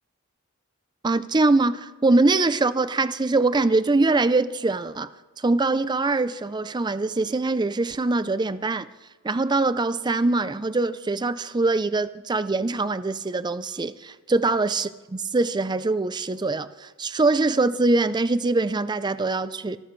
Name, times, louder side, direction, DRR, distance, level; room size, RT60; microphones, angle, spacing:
voice 1, 1.0-5.1 5.4-8.9 9.2-19.8, right 3 dB, 20° right, 14 dB, 0.4 m, -23 dB
26.5 x 13.0 x 3.2 m, 1.2 s
head